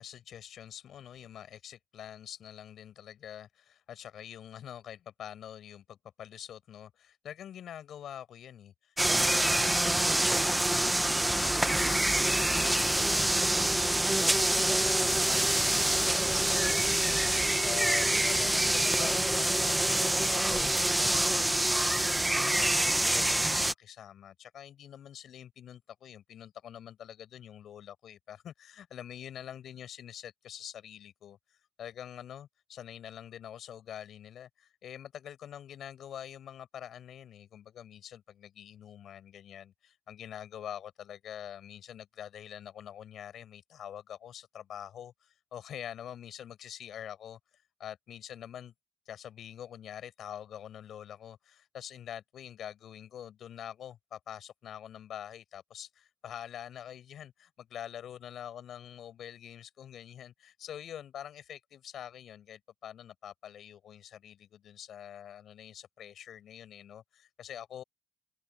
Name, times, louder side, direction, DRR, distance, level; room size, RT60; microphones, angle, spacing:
voice 1, 0.0-48.7 49.0-67.8, left 10 dB, 70° left, 6.8 m, -45 dB
sound 1, 9.0-23.7, right 1 dB, 10° right, 1.0 m, -26 dB
open air
cardioid pair, 90°, 0 cm